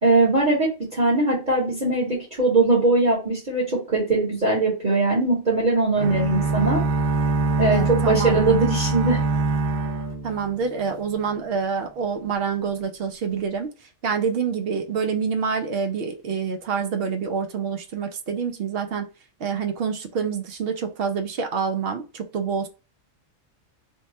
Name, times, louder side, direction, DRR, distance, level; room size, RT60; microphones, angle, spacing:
voice 1, 0.0-6.8 7.6-9.2, right 2 dB, 40° right, -3 dB, 1.0 m, -21 dB
sound 1, 6.0-10.9, right 3 dB, 85° right, 1.1 m, -24 dB
voice 2, 7.7-8.6 10.2-13.7 14.0-19.1 19.4-22.7, right 6 dB, 60° right, 6 dB, 0.6 m, -27 dB
2.7 x 2.2 x 4.1 m, 0.31 s
omnidirectional pair, 1.4 m